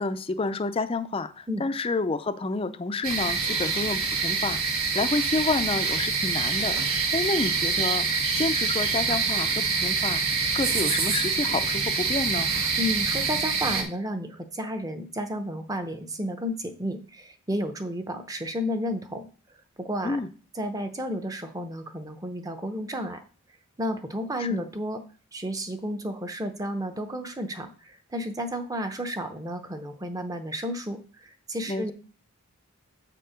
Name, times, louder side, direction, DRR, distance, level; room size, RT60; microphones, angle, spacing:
voice 1, 0.0-12.5 20.0-20.3 24.4-24.7 31.7-31.9, left 3 dB, 25° left, 11 dB, 0.4 m, -29 dB
sound 1, 3.0-13.8, right 4 dB, 75° right, 1.3 m, -26 dB
voice 2, 12.8-19.3 19.8-20.2 20.5-23.2 23.8-25.0 25.3-31.0 31.5-31.9, equal, 15° right, 7 dB, 0.7 m, -32 dB
7.5 x 4.5 x 5.0 m, 0.39 s
head